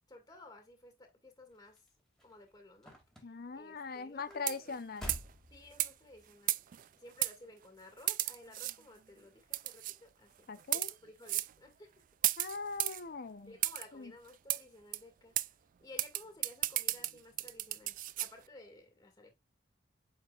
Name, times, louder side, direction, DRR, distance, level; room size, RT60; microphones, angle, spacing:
voice 1, 0.1-1.9 2.2-2.9 3.2-4.8 5.5-6.6 7.0-11.9 13.5-19.3, left 2 dB, 20° left, 2.0 m, -55 dB
sound 1, 1.5-6.3 7.0-7.4 7.7-7.8, equal, 5° left, 2.3 m, -50 dB
voice 2, 3.2-5.1 10.5-10.9 12.4-13.5 13.9-14.1, left 4 dB, 50° left, 0.6 m, -41 dB
sound 2, 4.4-4.8 5.1-5.3 5.8-5.9 6.5-6.8 7.2-7.3 8.1-8.8 9.5-10.0 10.6-10.9 11.3-11.5 12.2-13.0 13.6-13.9 14.5-14.6 14.9-15.0 15.4-15.5 16.0-18.3, right 16 dB, 45° right, 0.3 m, -33 dB
8.7 x 4.8 x 2.4 m
head